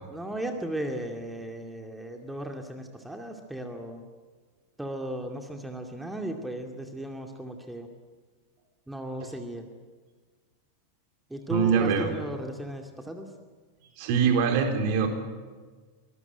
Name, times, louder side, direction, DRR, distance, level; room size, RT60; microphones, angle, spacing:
voice 1, 0.1-4.0 4.8-7.9 8.9-9.7 11.3-13.3, right 1 dB, 5° right, 4 dB, 2.4 m, -35 dB
voice 2, 11.5-12.1 14.0-15.1, right 6 dB, 45° right, 4 dB, 4.2 m, -23 dB
24.5 x 21.0 x 9.1 m, 1.4 s
figure-of-eight pair, 90°, 0 cm